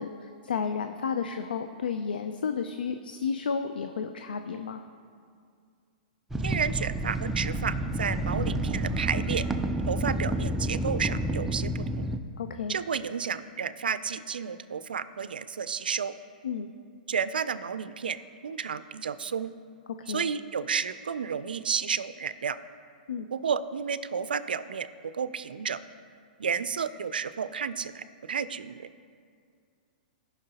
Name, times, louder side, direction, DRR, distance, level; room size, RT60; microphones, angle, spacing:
voice 1, 0.0-4.8 12.4-12.8 16.4-16.7 20.0-20.3 23.1-23.3, left 6 dB, 85° left, 8 dB, 0.4 m, -32 dB
sound 1, 6.3-12.2, right 1 dB, 5° right, 0.4 m, -29 dB
voice 2, 6.4-9.4 9.9-12.1 12.7-16.1 17.1-18.2 18.4-19.5 20.1-22.6 23.3-24.9 25.1-25.8 26.4-28.9, right 6 dB, 90° right, 13 dB, 0.4 m, -31 dB
16.5 x 5.7 x 2.9 m, 2.2 s
hypercardioid pair, 125°, 5 cm